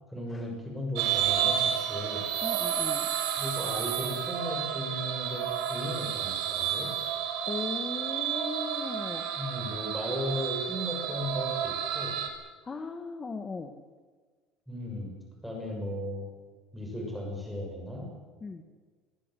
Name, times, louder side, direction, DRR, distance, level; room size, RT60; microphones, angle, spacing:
voice 1, 0.1-2.3 3.4-6.9 9.4-12.2 14.7-16.3 16.7-18.1, left 1 dB, ahead, 0 dB, 6.6 m, -36 dB
sound 1, 1.0-12.3, right 9 dB, 70° right, 5.1 m, -31 dB
voice 2, 2.4-3.1 7.5-9.3 12.6-13.7 18.4-18.6, left 4 dB, 20° left, 7 dB, 1.6 m, -37 dB
24.0 x 21.5 x 7.8 m, 1.5 s
cardioid pair, 155°, 0 cm